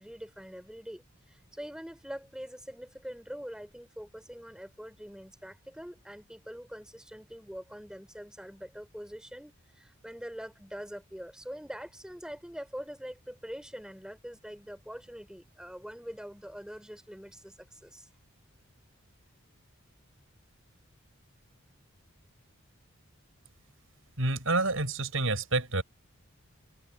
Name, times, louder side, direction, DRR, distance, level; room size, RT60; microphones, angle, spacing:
voice 1, 0.0-18.1, equal, 5° right, 4.1 m, -44 dB
voice 2, 24.2-25.8, right 2 dB, 75° right, 6.4 m, -28 dB
head